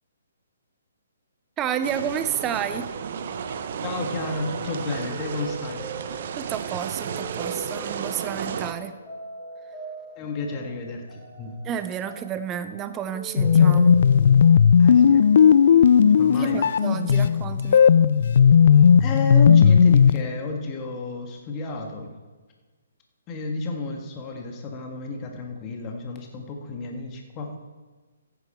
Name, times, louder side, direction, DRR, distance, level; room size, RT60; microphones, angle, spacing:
voice 1, 1.6-2.9 6.4-9.0 11.6-14.0 16.3-17.8, right 9 dB, 20° right, 11 dB, 0.7 m, -31 dB
sound 1, 1.7-14.0, right 3 dB, 5° left, 2.8 m, -41 dB
sound 2, 1.8-8.7, right 7 dB, 50° right, 0.8 m, -33 dB
voice 2, 3.8-5.9 10.2-11.5 14.8-15.3 16.2-16.6 17.2-17.3 19.0-22.1 23.3-27.6, left 3 dB, 25° left, 2 dB, 1.7 m, -31 dB
sound 3, 13.4-20.2, left 7 dB, 60° left, 0.4 m, -15 dB
14.5 x 9.5 x 4.5 m, 1.4 s
hypercardioid pair, 140°, 0 cm